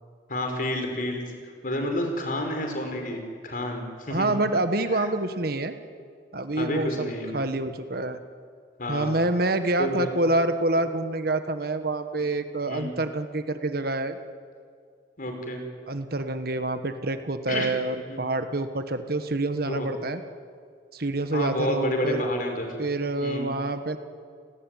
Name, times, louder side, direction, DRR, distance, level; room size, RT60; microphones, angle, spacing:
voice 1, 0.3-1.2 1.6-4.3 4.9-5.1 6.6-7.4 8.8-9.2 9.8-10.1 12.7-12.9 15.2-15.6 17.5-17.7 18.1-18.2 19.6-19.9 21.3-22.7 23.2-23.5, left 1 dB, 50° left, 4 dB, 5.5 m, -29 dB
voice 2, 4.1-5.8 6.3-8.2 8.9-14.2 15.9-20.2 20.9-22.3 22.8-24.0, right 2 dB, 60° right, 9 dB, 1.6 m, -27 dB
29.5 x 19.5 x 9.4 m, 2.2 s
head